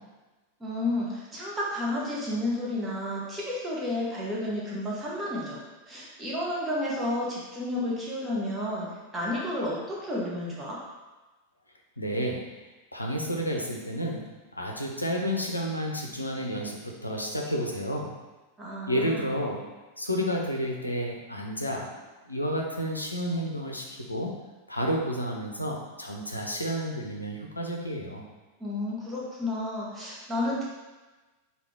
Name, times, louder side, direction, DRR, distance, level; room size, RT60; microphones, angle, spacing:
voice 1, 0.6-10.8 18.6-19.3 28.6-30.6, left 1 dB, 15° right, -6 dB, 1.0 m, -31 dB
voice 2, 12.0-12.5 12.9-18.1 18.9-19.6 20.0-24.3 24.7-28.2, equal, 85° left, 0 dB, 0.5 m, -31 dB
3.4 x 2.4 x 3.3 m, 1.2 s
figure-of-eight pair, 90°, 0 cm